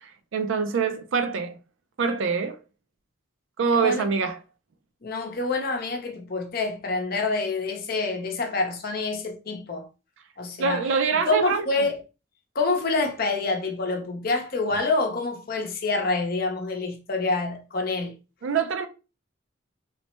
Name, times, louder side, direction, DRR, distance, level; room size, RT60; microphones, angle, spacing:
voice 1, 0.0-1.5 2.0-2.6 3.6-4.4 10.6-11.7 18.4-18.9, right 5 dB, 80° right, 0.4 m, -25 dB
voice 2, 3.7-4.1 5.0-9.9 10.4-10.8 11.2-12.0 12.5-18.2, left 3 dB, 50° left, 0.7 m, -27 dB
3.1 x 2.1 x 3.0 m
head